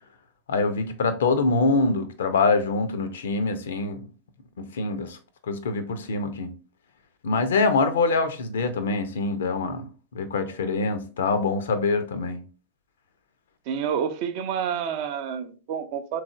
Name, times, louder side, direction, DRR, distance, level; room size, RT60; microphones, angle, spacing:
voice 1, 0.5-4.1 4.6-5.2 5.5-6.5 7.2-12.4, left 3 dB, 65° left, 0.5 m, -25 dB
voice 2, 13.7-16.2, right 7 dB, 45° right, 0.4 m, -29 dB
3.5 x 3.1 x 2.4 m
figure-of-eight pair, 90°, 0 cm